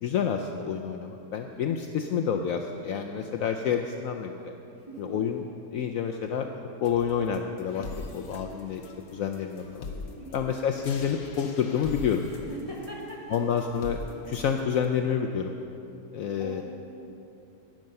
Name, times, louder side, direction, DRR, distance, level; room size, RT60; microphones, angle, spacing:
voice 1, 0.0-4.5 5.0-5.4 5.7-6.5 6.8-7.9 8.1-9.9 10.3-12.2 13.3-15.6 16.1-16.6, left 7 dB, 80° left, 4 dB, 0.7 m, -29 dB
voice 2, 4.8-5.3 10.1-10.4 12.4-13.4 16.4-16.6, right 1 dB, 20° right, -5 dB, 2.3 m, -41 dB
sound 1, 6.8-14.8, left 3 dB, 60° left, 1.3 m, -43 dB
12.5 x 9.3 x 5.4 m, 2.8 s
omnidirectional pair, 2.0 m